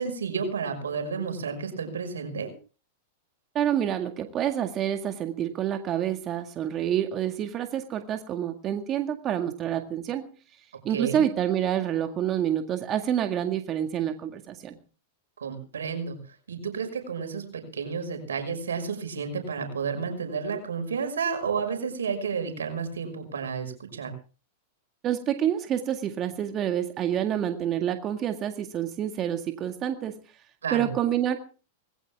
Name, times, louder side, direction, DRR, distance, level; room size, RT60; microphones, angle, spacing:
voice 1, 0.0-2.5 10.9-11.2 15.4-16.2 16.5-24.1 30.6-30.9, right 5 dB, 85° right, 6 dB, 5.6 m, -31 dB
voice 2, 3.5-10.3 10.8-14.8 25.0-30.2 30.7-31.4, right 10 dB, 35° right, 6 dB, 1.9 m, -28 dB
20.0 x 16.5 x 3.6 m, 0.36 s
hypercardioid pair, 110°, 0 cm